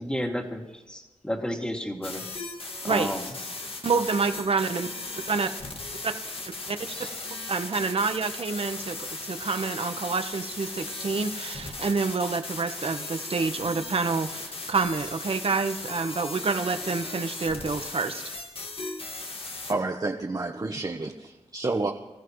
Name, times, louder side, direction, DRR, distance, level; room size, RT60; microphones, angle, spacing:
voice 1, 0.0-2.3 2.8-3.3 6.9-7.1, equal, 10° left, 1 dB, 2.5 m, -32 dB
sound 1, 2.0-19.7, left 3 dB, 55° left, 1.9 m, -37 dB
voice 2, 3.8-4.9 5.3-5.5 6.0-6.1 6.7-6.8 7.5-18.2, right 4 dB, 55° right, 8 dB, 1.2 m, -28 dB
voice 3, 19.7-21.9, right 3 dB, 35° right, 2 dB, 1.1 m, -29 dB
26.0 x 14.5 x 3.2 m, 1.1 s
wide cardioid pair, 75°, 11 cm